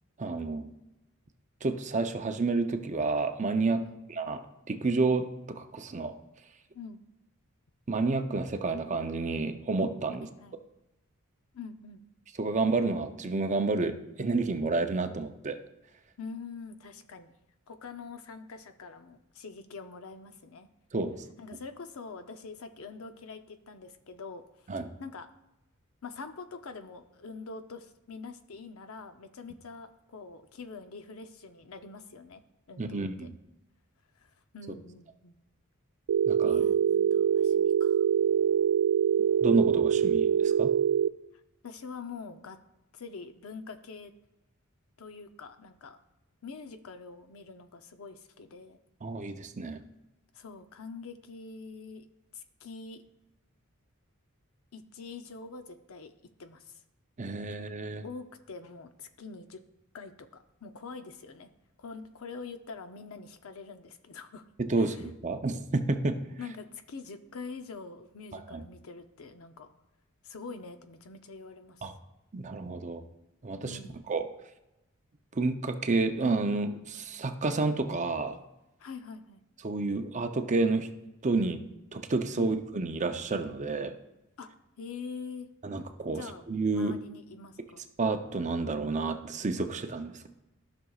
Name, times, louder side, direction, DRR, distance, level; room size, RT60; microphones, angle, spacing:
voice 1, 0.2-0.7 1.6-3.8 4.2-4.4 4.7-6.1 7.9-10.3 12.4-15.6 20.9-21.2 24.7-24.9 32.8-33.4 36.3-36.6 39.4-40.7 49.0-49.8 57.2-58.0 64.6-66.2 68.3-68.6 71.8-71.9 72.3-73.0 73.4-73.8 74.1-74.3 75.3-78.4 79.6-80.9 81.2-81.6 81.9-84.0 85.6-86.9 88.0-90.3, right 3 dB, 35° right, 7 dB, 0.6 m, -30 dB
voice 2, 10.2-10.6 11.5-12.0 16.2-17.3 17.7-20.7 21.4-25.3 26.0-32.4 32.7-33.3 34.2-34.3 34.5-35.4 36.4-38.1 41.6-42.6 42.9-44.1 45.0-46.0 46.4-48.8 50.3-52.0 52.3-53.0 54.7-56.1 56.4-56.8 58.0-59.6 59.9-61.5 61.8-64.4 64.8-65.0 66.4-69.7 70.2-71.9 73.6-74.1 78.8-79.4 82.4-82.6 84.4-84.5 84.8-85.5 86.1-86.4 86.7-87.8, left 4 dB, 70° left, 9 dB, 0.6 m, -44 dB
Telephone, 36.1-41.1, right 8 dB, 90° right, 0.3 m, -24 dB
14.0 x 6.1 x 2.4 m, 0.94 s
head